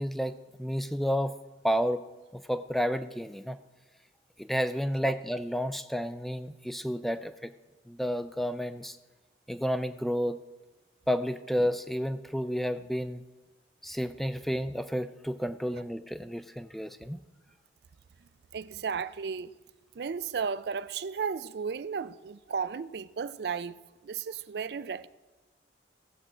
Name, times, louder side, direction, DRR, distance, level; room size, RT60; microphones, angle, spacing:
voice 1, 0.0-1.4 1.6-2.0 2.5-3.6 4.4-7.5 7.9-9.0 9.5-10.4 11.1-13.2 13.8-17.2, equal, ahead, 0.4 m, -31 dB
voice 2, 18.5-19.5 20.0-23.8 24.0-25.1, right 6 dB, 65° right, 0.4 m, -34 dB
17.0 x 7.7 x 5.0 m
head